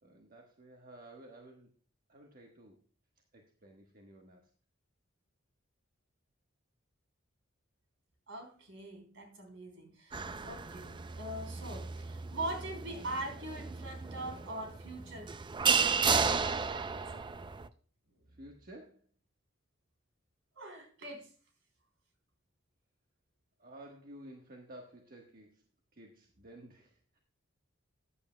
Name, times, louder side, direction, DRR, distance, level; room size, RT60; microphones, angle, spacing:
voice 1, 0.0-1.7 2.1-2.8 3.3-4.5 10.7-11.2 18.3-19.1 23.6-25.6 25.9-27.2, right 1 dB, 45° right, 1.3 m, -53 dB
voice 2, 8.3-10.9 11.2-15.3 16.3-17.2 20.6-21.3, right 1 dB, 70° right, 3.5 m, -42 dB
sound 1, 10.1-17.7, right 5 dB, 25° right, 0.4 m, -33 dB
14.5 x 9.9 x 2.2 m
head